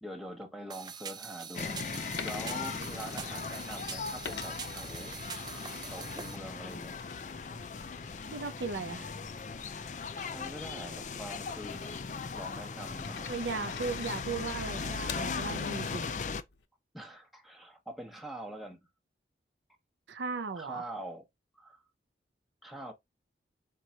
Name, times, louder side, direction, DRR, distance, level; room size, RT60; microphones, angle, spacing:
voice 1, 0.0-7.0 10.2-12.0 12.3-13.3 16.9-18.8 20.5-21.2 21.5-21.8 22.6-22.9, right 1 dB, ahead, 1.0 m, -44 dB
sound 1, 0.7-6.4, right 7 dB, 25° right, 0.4 m, -44 dB
sound 2, 1.5-16.4, left 5 dB, 45° left, 0.4 m, -38 dB
Coin (dropping), 2.2-3.8 4.2-5.8 6.2-16.7, left 6 dB, 85° left, 0.7 m, -48 dB
voice 2, 8.3-9.1 13.3-16.2 20.1-20.9, right 4 dB, 90° right, 0.6 m, -37 dB
4.6 x 2.4 x 4.2 m
head